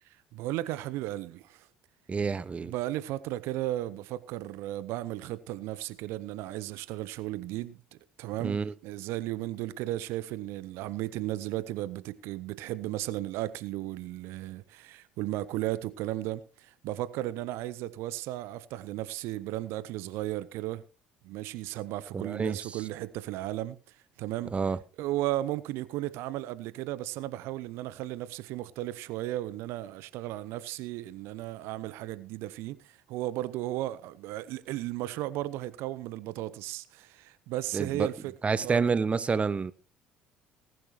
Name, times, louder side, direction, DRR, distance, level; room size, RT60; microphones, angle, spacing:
voice 1, 0.3-1.7 2.6-7.8 8.2-20.8 21.2-24.6 25.0-38.3 38.6-38.9, right 15 dB, 60° right, 0.7 m, -35 dB
voice 2, 2.1-2.7 8.4-8.7 22.1-22.6 24.5-24.8 37.7-38.1 38.4-39.7, right 5 dB, 25° right, 0.6 m, -28 dB
19.5 x 11.0 x 3.1 m
figure-of-eight pair, 55°, 5 cm